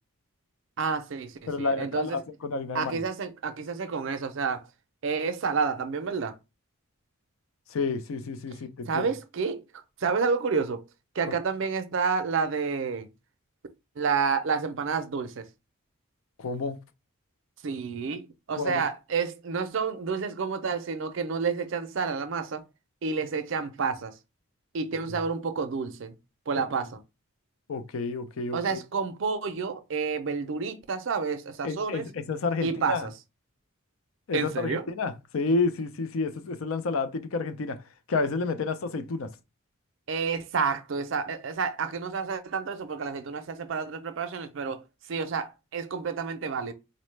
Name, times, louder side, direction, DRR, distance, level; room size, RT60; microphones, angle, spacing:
voice 1, 0.8-2.2 2.7-4.6 5.0-6.4 8.9-9.6 10.0-10.8 11.2-13.1 14.0-15.5 17.6-22.6 23.0-24.1 24.7-26.1 26.5-27.0 28.5-32.1 32.6-33.1 34.3-34.8 40.1-44.8 45.1-46.7, right 5 dB, 60° right, 0.4 m, -29 dB
voice 2, 1.5-3.0 7.7-9.1 16.4-16.8 18.5-18.8 27.7-28.8 31.6-33.1 34.3-37.8 38.1-39.3, left 3 dB, 75° left, 0.5 m, -30 dB
4.0 x 2.1 x 3.2 m
head